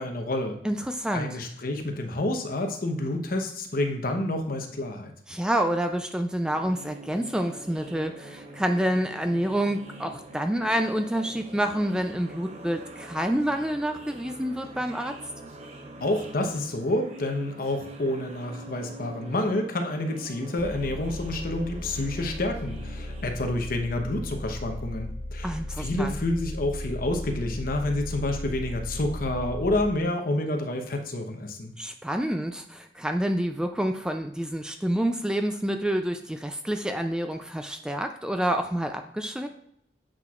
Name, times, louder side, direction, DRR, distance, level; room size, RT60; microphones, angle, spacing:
voice 1, 0.0-0.6 1.1-5.1 16.0-31.7, left 1 dB, 55° left, 4 dB, 0.9 m, -29 dB
voice 2, 0.6-1.4 5.3-15.1 25.4-26.2 31.8-39.5, right 1 dB, 5° right, 6 dB, 0.4 m, -28 dB
sound 1, 6.5-23.2, right 1 dB, 40° right, 0.9 m, -44 dB
sound 2, 20.6-29.9, left 1 dB, 90° left, 0.7 m, -36 dB
8.7 x 6.0 x 2.4 m, 0.74 s
head